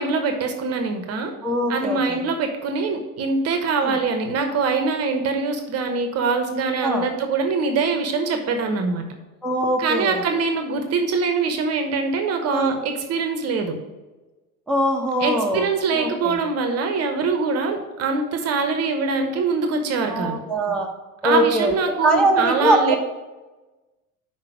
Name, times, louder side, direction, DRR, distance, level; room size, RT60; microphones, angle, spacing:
voice 1, 0.0-1.3 1.7-9.0 9.8-13.7 15.2-20.4 21.2-23.0, right 4 dB, 35° right, 6 dB, 0.9 m, -23 dB
voice 2, 1.4-2.2 3.8-3.9 6.8-7.1 9.4-10.2 12.5-12.8 14.7-15.7 15.9-16.4 20.1-20.9 21.2-21.7 22.0-23.0, right 1 dB, ahead, -1 dB, 0.8 m, -22 dB
5.8 x 4.5 x 5.9 m, 1.2 s
figure-of-eight pair, 70°, 44 cm